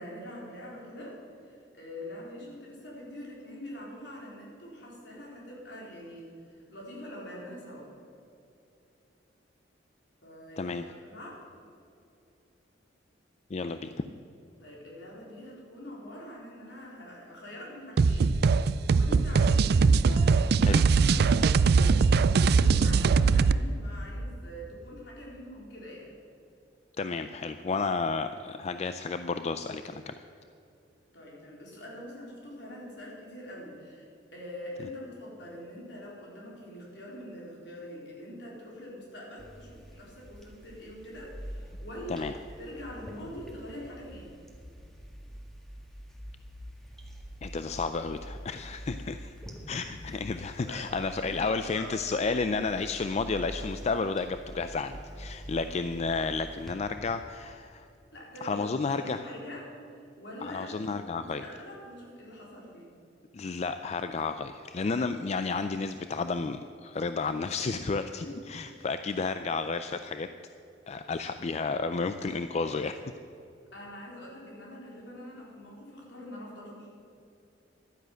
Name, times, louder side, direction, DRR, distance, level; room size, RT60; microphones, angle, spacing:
voice 1, 0.0-7.9 10.2-11.4 14.6-22.0 22.2-26.1 31.1-42.3 42.6-44.3 50.6-51.9 52.2-52.3 58.1-60.7 61.0-62.9 68.1-68.4 73.7-76.9, equal, 70° left, -3 dB, 4.1 m, -44 dB
voice 2, 10.6-10.9 13.5-14.1 20.6-20.8 27.0-30.1 42.1-42.3 47.4-49.3 49.7-57.9 58.4-59.2 60.4-61.4 63.3-70.3 70.9-73.0, left 4 dB, 35° left, 9 dB, 0.4 m, -32 dB
sound 1, 18.0-23.6, right 4 dB, 60° right, 0.4 m, -21 dB
sound 2, 39.4-56.7, equal, ahead, 1.8 m, -45 dB
12.0 x 10.0 x 7.7 m, 2.7 s
head